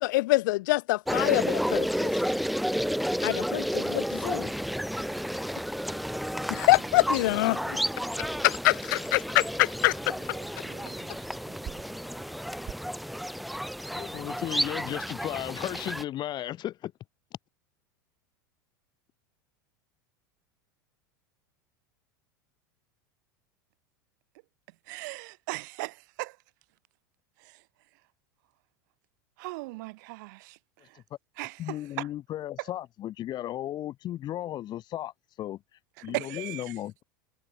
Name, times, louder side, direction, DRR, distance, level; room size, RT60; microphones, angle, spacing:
voice 1, 0.0-2.1 3.2-4.5 6.5-7.8 8.4-10.1, left 20 dB, 70° left, 0.8 m, -25 dB
sound 1, 1.1-16.0, equal, ahead, 1.3 m, -31 dB
sound 2, 3.9-12.7, right 10 dB, 40° right, 6.0 m, -50 dB
voice 2, 13.9-16.9 31.0-31.1 31.6-35.1 35.4-35.6 36.0-37.0, left 13 dB, 40° left, 2.2 m, -35 dB
voice 3, 24.9-26.4 29.4-30.6 31.4-32.1 36.0-36.6, right 24 dB, 65° right, 3.1 m, -37 dB
hypercardioid pair, 95°, 11 cm